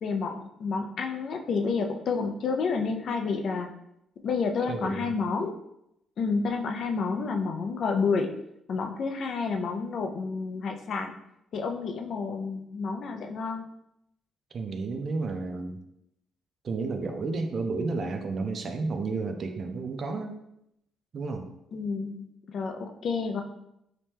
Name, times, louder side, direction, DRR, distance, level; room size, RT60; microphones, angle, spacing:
voice 1, 0.0-3.7 4.2-5.5 6.2-8.3 8.7-11.1 11.5-13.6 21.7-23.4, left 4 dB, 60° left, 4 dB, 0.3 m, -29 dB
voice 2, 4.7-5.2 14.5-15.8 16.6-20.4 21.1-21.4, right 3 dB, 50° right, 6 dB, 0.4 m, -31 dB
2.9 x 2.1 x 3.2 m, 0.81 s
cardioid pair, 90°, 0 cm